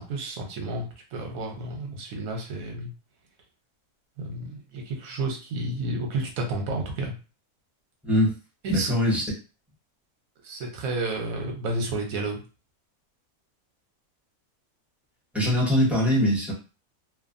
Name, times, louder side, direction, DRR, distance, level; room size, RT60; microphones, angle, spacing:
voice 1, 0.0-2.9 4.2-7.1 8.6-8.9 10.4-12.4, right 2 dB, 65° right, 2 dB, 1.2 m, -31 dB
voice 2, 8.0-8.3 8.7-9.2 15.3-16.5, equal, ahead, -4 dB, 0.7 m, -22 dB
3.1 x 2.1 x 2.5 m, 0.32 s
omnidirectional pair, 1.6 m